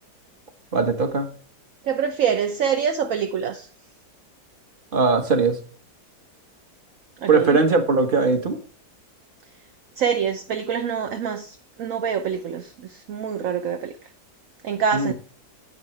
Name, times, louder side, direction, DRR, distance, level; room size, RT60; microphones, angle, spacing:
voice 1, 0.7-1.3 4.9-5.6 7.3-8.6 14.9-15.1, right 4 dB, 35° right, 1.4 m, -20 dB
voice 2, 1.8-3.7 7.2-7.6 10.0-14.0 14.6-15.1, right 7 dB, 60° right, 1.0 m, -25 dB
9.6 x 9.0 x 3.3 m
omnidirectional pair, 1.8 m